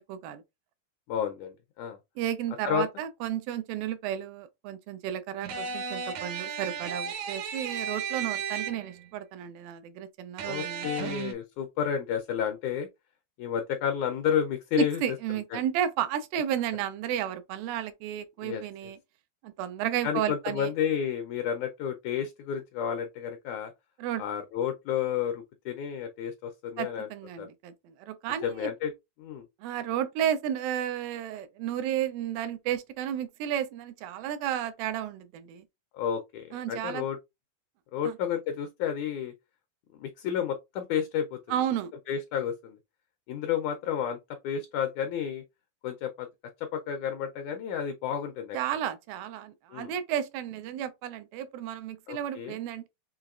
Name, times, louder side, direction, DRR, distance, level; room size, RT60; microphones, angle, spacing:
voice 1, 0.1-0.4 2.2-11.1 14.8-19.0 19.4-20.7 24.0-24.2 26.8-28.7 29.6-35.7 36.5-37.0 38.0-38.2 41.5-41.9 48.5-52.9, right 10 dB, 90° right, 2.5 m, -32 dB
voice 2, 1.1-2.0 2.6-2.8 10.4-12.9 13.4-15.0 15.5-15.6 18.4-18.6 20.0-23.7 24.2-27.1 27.4-27.5 28.4-28.9 29.2-29.4 35.9-37.2 37.9-39.3 40.0-41.4 42.1-42.8 43.3-44.2 44.4-45.4 45.8-46.3 46.6-48.6 49.7-49.9 52.1-52.6, left 8 dB, 80° left, 1.7 m, -31 dB
sound 1, 5.4-9.1 10.4-11.3, right 6 dB, 70° right, 1.8 m, -34 dB
6.5 x 2.9 x 2.4 m
omnidirectional pair, 4.0 m